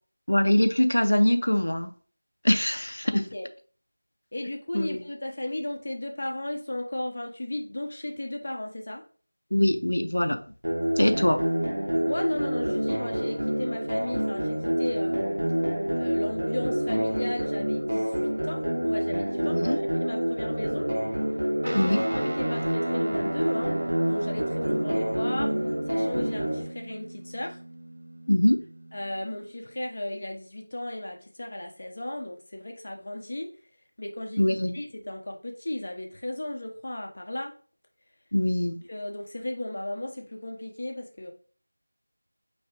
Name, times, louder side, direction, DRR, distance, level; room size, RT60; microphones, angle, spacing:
voice 1, 0.3-1.9 2.4-3.3 4.7-5.0 9.5-10.4 11.0-11.4 19.4-19.8 21.8-22.0 28.3-28.6 34.4-34.7 38.3-38.8, left 1 dB, 75° left, 0.6 m, -23 dB
voice 2, 3.1-3.5 4.3-9.0 12.1-15.4 16.0-20.9 21.6-23.7 24.1-25.5 25.9-27.6 28.9-33.5 34.0-34.4 34.7-37.5 38.9-41.3, left 1 dB, 35° left, 0.7 m, -35 dB
sound 1, 10.6-26.6, equal, 70° right, 1.1 m, -27 dB
Guitar, 21.6-29.3, right 1 dB, 55° right, 0.4 m, -37 dB
5.7 x 3.2 x 2.9 m
figure-of-eight pair, 175°, 0 cm